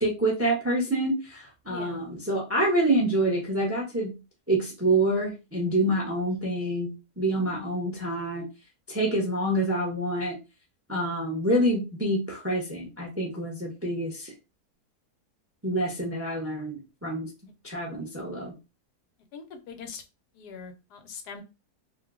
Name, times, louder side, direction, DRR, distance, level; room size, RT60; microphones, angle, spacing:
voice 1, 0.0-4.1 4.5-8.5 8.9-10.4 10.9-14.3 15.6-17.3 17.6-18.6, right 1 dB, 15° right, -1 dB, 0.6 m, -27 dB
voice 2, 1.7-2.0 19.3-20.0 20.3-21.4, left 6 dB, 85° left, 6 dB, 1.2 m, -42 dB
2.8 x 2.2 x 3.5 m, 0.27 s
omnidirectional pair, 1.7 m